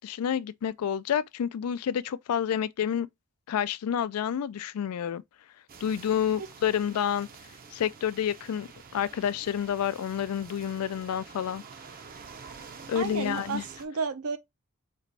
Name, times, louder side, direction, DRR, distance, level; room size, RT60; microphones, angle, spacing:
voice 1, 0.0-3.1 3.5-5.2 5.8-7.3 7.7-11.6 12.9-13.6, left 9 dB, 90° left, 0.3 m, -29 dB
sound 1, 5.7-13.9, right 5 dB, 45° right, 0.6 m, -48 dB
voice 2, 12.9-14.4, right 5 dB, 80° right, 0.7 m, -32 dB
4.2 x 2.5 x 3.2 m
head